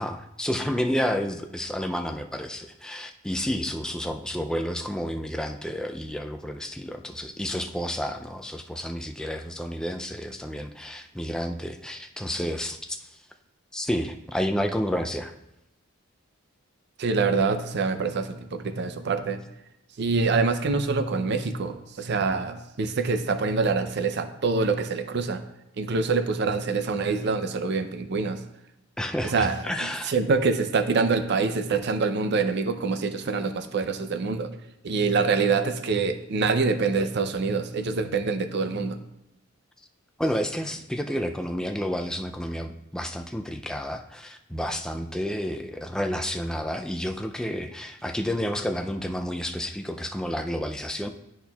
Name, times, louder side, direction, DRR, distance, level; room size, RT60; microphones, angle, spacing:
voice 1, 0.0-13.2 13.7-15.3 29.0-30.1 40.2-51.1, equal, 5° left, 5 dB, 0.3 m, -30 dB
voice 2, 17.0-19.4 20.0-25.4 25.8-28.4 29.2-29.5 29.8-34.5 34.8-39.0, right 4 dB, 55° right, 8 dB, 0.5 m, -25 dB
12.0 x 4.3 x 2.3 m, 0.86 s
head